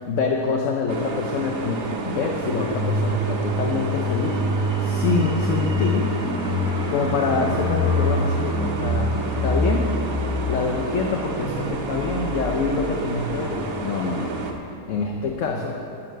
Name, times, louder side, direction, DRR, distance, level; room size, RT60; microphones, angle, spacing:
voice 1, 0.0-4.3 4.8-6.1 6.9-9.9 10.5-14.4 14.9-15.8, left 4 dB, 60° left, 2 dB, 1.1 m, -26 dB
sound 1, 0.9-14.5, right 3 dB, 70° right, 1.4 m, -31 dB
sound 2, 2.5-14.9 15.2-15.3, left 1 dB, 5° right, 0.4 m, -26 dB
12.0 x 7.5 x 6.6 m, 2.9 s
omnidirectional pair, 1.5 m